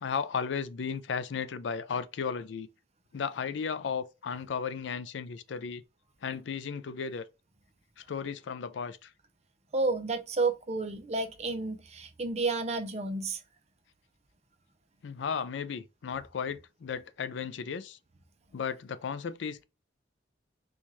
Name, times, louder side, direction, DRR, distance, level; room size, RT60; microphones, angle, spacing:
voice 1, 0.0-2.7 3.1-5.8 6.2-7.3 8.0-9.1 15.0-18.0 18.5-19.6, left 6 dB, 70° left, 0.4 m, -35 dB
voice 2, 9.7-13.4, right 3 dB, 35° right, 0.6 m, -31 dB
4.3 x 2.4 x 3.0 m
head